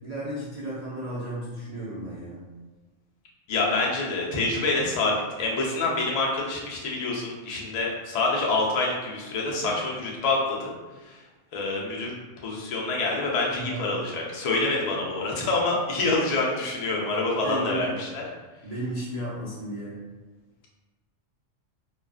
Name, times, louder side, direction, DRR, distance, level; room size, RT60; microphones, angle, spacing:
voice 1, 0.0-2.5 13.5-13.8 17.4-18.0 18.6-20.0, right 1 dB, 60° right, -8 dB, 0.4 m, -34 dB
voice 2, 3.5-10.7 11.0-11.2 11.5-12.1 12.4-18.2, left 3 dB, 65° left, -3 dB, 0.4 m, -26 dB
2.3 x 2.3 x 2.3 m, 1.2 s
omnidirectional pair, 1.3 m